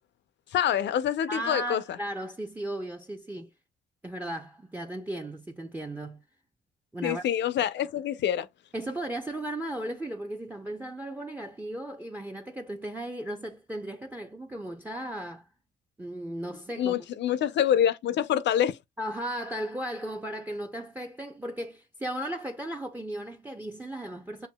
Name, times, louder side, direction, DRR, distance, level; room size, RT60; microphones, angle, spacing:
voice 1, 0.5-1.8 7.0-8.5 16.8-18.8, left 10 dB, 65° left, 0.5 m, -26 dB
voice 2, 1.3-3.5 4.0-6.2 6.9-7.2 8.7-15.5 16.0-17.0 19.0-24.5, right 1 dB, 10° right, 0.6 m, -36 dB
6.9 x 2.6 x 2.2 m
cardioid pair, 90°, 20 cm